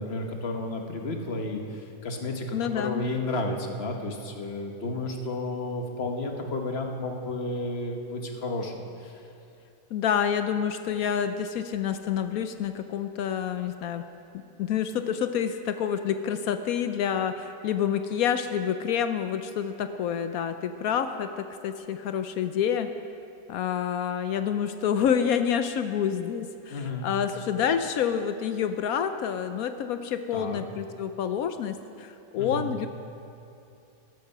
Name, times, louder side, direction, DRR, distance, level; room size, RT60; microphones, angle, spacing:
voice 1, 0.0-9.2 26.7-27.1 30.3-30.6 32.4-32.7, left 2 dB, 45° left, 3 dB, 1.3 m, -32 dB
voice 2, 2.5-3.0 9.9-14.0 14.6-22.9 23.5-32.9, left 8 dB, 70° left, 9 dB, 1.0 m, -28 dB
13.0 x 12.5 x 5.5 m, 2.7 s
omnidirectional pair, 1.7 m